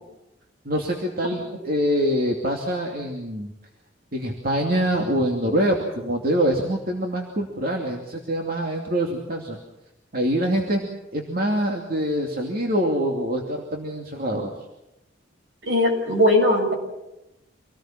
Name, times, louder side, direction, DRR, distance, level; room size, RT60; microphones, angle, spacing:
voice 1, 0.6-3.5 4.1-9.6 10.1-10.9 11.1-14.5, equal, 50° right, 0 dB, 2.7 m, -25 dB
voice 2, 15.7-16.7, left 1 dB, 70° right, 2 dB, 7.0 m, -19 dB
27.0 x 19.0 x 7.6 m, 0.91 s
head